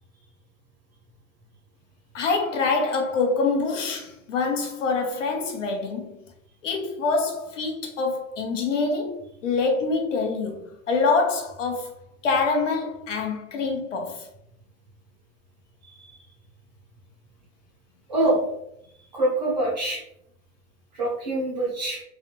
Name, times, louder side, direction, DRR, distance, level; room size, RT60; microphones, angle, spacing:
voice 1, 2.1-6.2 6.6-11.9 12.2-14.3, left 4 dB, 55° left, 0.7 m, -25 dB
voice 2, 15.8-16.2 18.1-18.4 19.1-20.0 20.9-22.0, right 1 dB, 30° right, 0.7 m, -25 dB
3.2 x 2.5 x 2.8 m
hypercardioid pair, 180°, 45 cm